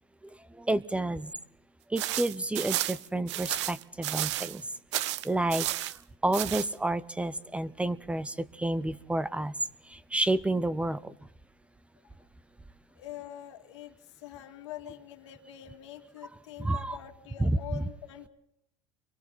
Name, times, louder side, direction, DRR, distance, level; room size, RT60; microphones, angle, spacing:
voice 1, 0.5-1.3 1.9-4.6 5.2-5.7 6.2-9.5 9.8-11.1 16.6-17.0 17.4-17.8, right 2 dB, 10° right, 17 dB, 0.7 m, -30 dB
sound 1, 2.0-4.6 4.9-6.0 6.3-6.7, right 14 dB, 85° right, 0.8 m, -32 dB
voice 2, 12.9-18.3, left 12 dB, 90° left, 5 dB, 2.4 m, -45 dB
29.5 x 23.5 x 4.2 m, 0.78 s
supercardioid pair, 110°, 15 cm